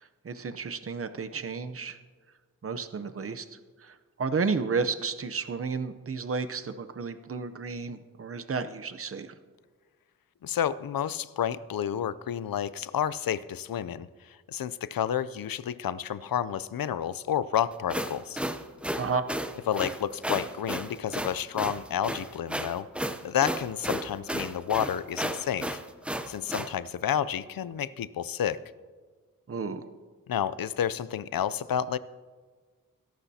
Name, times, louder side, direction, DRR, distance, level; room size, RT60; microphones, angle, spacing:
voice 1, 0.0-2.0 2.6-3.4 3.8-9.3 18.9-19.2 29.5-29.9, right 5 dB, 40° right, 10 dB, 0.7 m, -32 dB
voice 2, 10.4-18.4 19.7-22.9 23.2-25.8 26.3-28.7 30.3-32.0, left 9 dB, 85° left, 17 dB, 0.5 m, -30 dB
sound 1, 17.7-26.7, right 1 dB, 5° right, 0.6 m, -33 dB
22.0 x 11.5 x 2.8 m, 1.5 s
wide cardioid pair, 95°, 34 cm